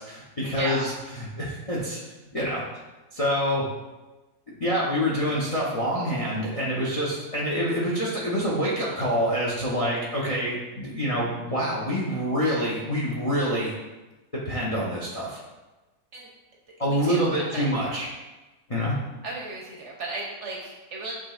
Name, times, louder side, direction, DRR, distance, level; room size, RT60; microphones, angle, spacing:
voice 1, 0.0-2.0 2.3-2.6 3.1-3.7 4.5-13.7 14.3-15.4 16.8-18.1 18.7-19.0, equal, 45° left, -5 dB, 0.4 m, -26 dB
voice 2, 16.9-17.7 19.2-21.1, right 2 dB, 60° right, -2 dB, 0.9 m, -34 dB
7.4 x 3.0 x 2.3 m, 1.1 s
omnidirectional pair, 1.7 m